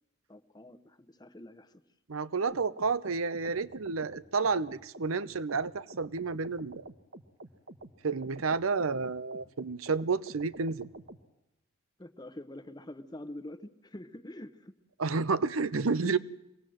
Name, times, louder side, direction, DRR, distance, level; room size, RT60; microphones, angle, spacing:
voice 1, 0.3-1.8 12.0-14.7 15.7-16.1, left 1 dB, 20° left, 11 dB, 0.9 m, -46 dB
voice 2, 2.1-6.8 8.0-10.8 15.0-16.2, right 4 dB, 90° right, 16 dB, 0.7 m, -30 dB
sound 1, 2.5-11.2, right 1 dB, 55° right, 1.2 m, -49 dB
24.5 x 19.0 x 7.7 m, 0.90 s
head